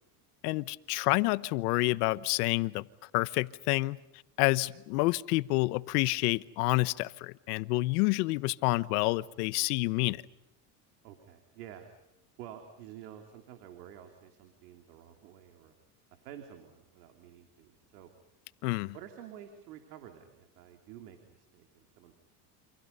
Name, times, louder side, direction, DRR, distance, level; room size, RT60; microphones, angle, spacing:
voice 1, 0.4-2.9 3.1-4.0 4.4-10.2 18.6-18.9, left 21 dB, 85° left, 1.1 m, -28 dB
voice 2, 11.0-11.9 12.4-15.7 16.1-18.1 18.9-22.2, right 10 dB, 90° right, 3.4 m, -50 dB
29.5 x 27.0 x 5.5 m
supercardioid pair, 110°, 46 cm